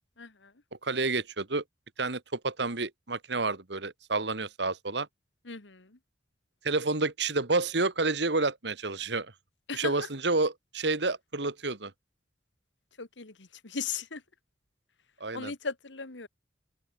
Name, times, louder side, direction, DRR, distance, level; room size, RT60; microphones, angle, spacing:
voice 1, 0.2-0.5 5.5-6.0 9.7-10.1 13.0-14.2 15.3-16.3, left 5 dB, 90° left, 1.9 m, -37 dB
voice 2, 0.8-1.6 2.0-5.1 6.6-9.3 9.7-11.9 15.2-15.5, right 3 dB, 70° right, 1.9 m, -29 dB
open air
head